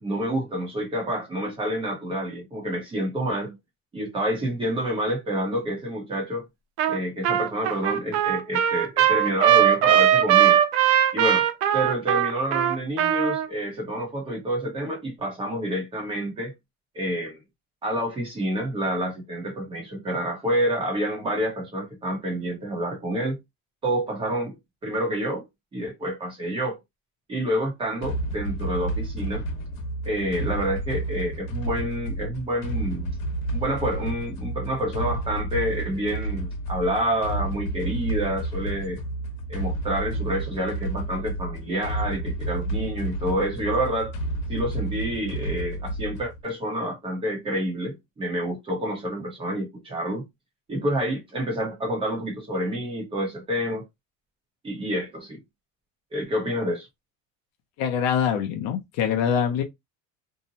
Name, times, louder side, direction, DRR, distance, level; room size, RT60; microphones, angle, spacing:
voice 1, 0.0-3.6 3.9-6.5 6.9-10.6 11.1-11.5 11.7-16.5 16.9-17.4 17.8-23.4 23.8-25.5 25.7-26.8 27.3-29.5 30.0-33.2 33.5-39.0 39.5-44.1 44.5-50.3 50.7-53.8 54.6-55.4 56.1-56.9, equal, 15° right, 0.8 m, -28 dB
Trumpet, 6.8-7.0 7.2-13.5, right 10 dB, 75° right, 0.6 m, -20 dB
sound 1, 28.0-46.4, right 1 dB, 65° left, 1.0 m, -31 dB
voice 2, 57.8-59.6, left 8 dB, 45° left, 0.6 m, -24 dB
2.7 x 2.1 x 2.7 m
cardioid pair, 170°, 39 cm